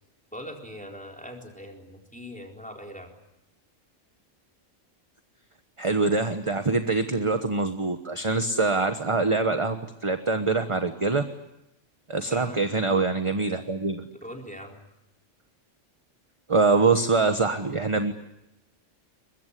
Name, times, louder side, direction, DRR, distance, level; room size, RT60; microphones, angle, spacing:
voice 1, 0.3-3.1 12.3-12.6 14.2-14.8, equal, 5° left, 1 dB, 4.1 m, -41 dB
voice 2, 5.8-9.8 10.0-11.2 12.1-14.0 16.5-18.1, right 3 dB, 25° right, 7 dB, 1.2 m, -24 dB
23.0 x 22.0 x 9.9 m, 0.88 s
omnidirectional pair, 1.3 m